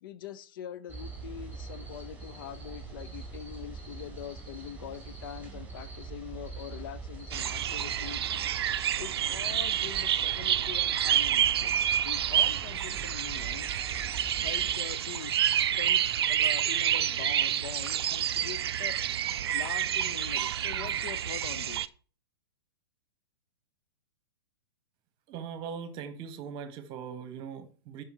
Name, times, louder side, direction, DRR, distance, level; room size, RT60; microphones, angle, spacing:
voice 1, 0.0-8.5 9.0-11.7 12.0-13.8 14.4-16.0 16.3-19.0 19.5-21.9, left 10 dB, 50° left, 0.7 m, -43 dB
sound 1, 0.9-14.7, right 4 dB, 10° right, 3.8 m, -44 dB
sound 2, 7.3-21.9, right 10 dB, 60° right, 0.5 m, -28 dB
voice 2, 25.3-28.0, right 7 dB, 35° right, 1.3 m, -40 dB
10.5 x 5.2 x 4.5 m
figure-of-eight pair, 110°, 14 cm